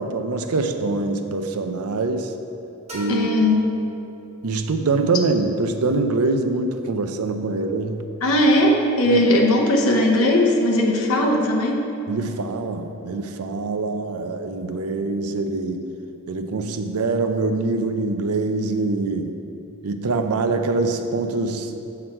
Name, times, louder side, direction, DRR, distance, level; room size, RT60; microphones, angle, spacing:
voice 1, 0.0-2.3 2.9-3.3 4.4-8.1 9.1-9.2 12.1-15.8 16.3-19.4 19.8-21.7, right 3 dB, 85° right, 7 dB, 0.5 m, -24 dB
sound 1, 2.9-4.6, equal, 30° right, 1.3 m, -38 dB
voice 2, 3.1-3.7 8.2-11.9, left 1 dB, 75° left, 0 dB, 0.8 m, -18 dB
7.7 x 5.9 x 4.4 m, 2.9 s
head